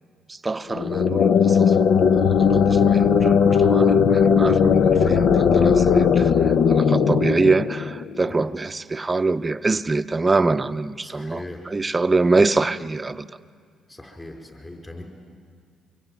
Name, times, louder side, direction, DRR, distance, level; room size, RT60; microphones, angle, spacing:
voice 1, 0.3-13.4, right 3 dB, 25° right, 11 dB, 0.6 m, -24 dB
sound 1, 0.7-8.3, left 6 dB, 70° left, 0.7 m, -18 dB
voice 2, 11.0-11.7 13.9-15.0, left 1 dB, 20° left, 1 dB, 4.7 m, -39 dB
24.5 x 22.0 x 9.3 m, 2.1 s
cardioid pair, 90°, 0 cm